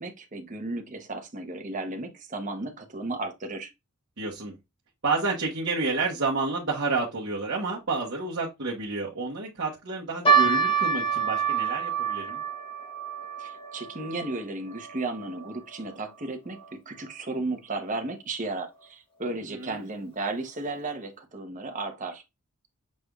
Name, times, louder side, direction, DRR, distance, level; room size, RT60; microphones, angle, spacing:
voice 1, 0.0-3.7 13.4-22.2, right 2 dB, 35° right, 0.9 m, -34 dB
voice 2, 4.2-4.5 5.0-12.4 19.5-19.8, right 3 dB, 60° right, 1.1 m, -30 dB
sound 1, 10.3-16.7 17.0-17.1 17.9-18.1 18.8-18.9 19.2-19.4, right 6 dB, 25° left, 0.9 m, -28 dB
6.4 x 3.4 x 2.3 m
head